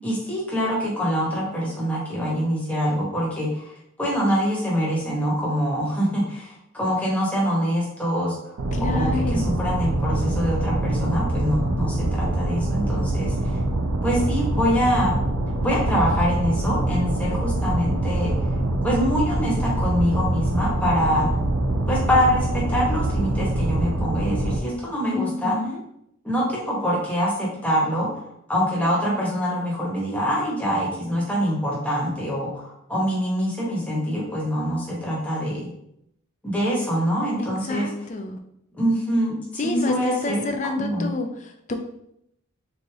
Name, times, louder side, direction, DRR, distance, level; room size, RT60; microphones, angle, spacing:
voice 1, 0.0-3.7 4.0-13.6 14.0-15.2 15.6-21.3 21.9-25.7 26.2-28.1 28.5-35.7 36.4-37.9 38.7-41.1, equal, 5° left, -5 dB, 1.1 m, -25 dB
sound 1, 8.6-24.6, right 1 dB, 85° right, 0.6 m, -24 dB
voice 2, 8.7-9.5 25.1-25.8 37.4-38.4 39.6-39.9 40.2-41.3 41.7-41.8, left 3 dB, 35° left, 5 dB, 0.4 m, -28 dB
3.9 x 3.3 x 3.4 m, 0.77 s
head